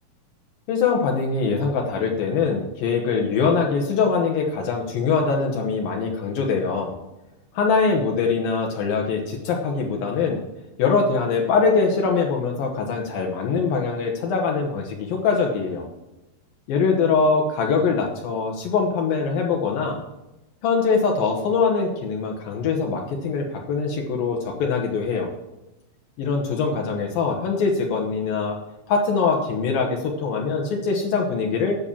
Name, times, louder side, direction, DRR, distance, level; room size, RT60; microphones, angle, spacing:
voice 1, 0.7-7.0 7.5-10.4 10.8-15.9 16.7-20.0 20.6-25.3 26.2-28.6 28.9-31.7, left 5 dB, 75° left, 0 dB, 2.9 m, -23 dB
9.9 x 6.8 x 7.0 m, 0.97 s
omnidirectional pair, 4.2 m